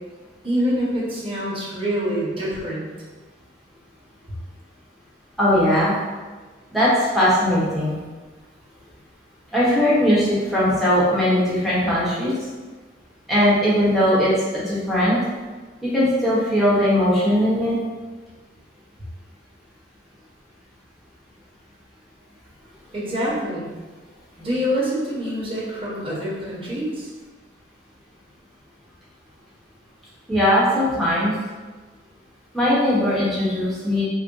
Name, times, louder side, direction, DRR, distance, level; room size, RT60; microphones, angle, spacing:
voice 1, 0.4-2.9 22.9-23.7 24.4-27.1, equal, 30° right, -7 dB, 1.0 m, -25 dB
voice 2, 5.4-5.9 6.7-8.0 9.5-12.3 13.3-15.2 15.9-17.7 30.3-31.3 32.5-34.0, equal, ahead, -9 dB, 0.9 m, -19 dB
3.9 x 2.1 x 3.7 m, 1.3 s
head